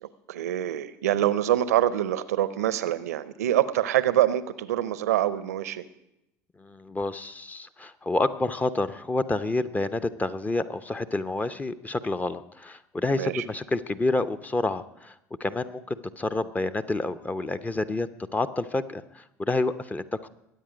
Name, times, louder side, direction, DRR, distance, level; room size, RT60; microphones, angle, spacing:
voice 1, 0.0-5.8 13.1-13.4, right 12 dB, 80° right, 16 dB, 0.6 m, -25 dB
voice 2, 6.6-15.1 15.4-20.3, left 2 dB, 20° left, 11 dB, 0.7 m, -29 dB
22.0 x 8.8 x 5.1 m, 0.87 s
hypercardioid pair, 65°, 8 cm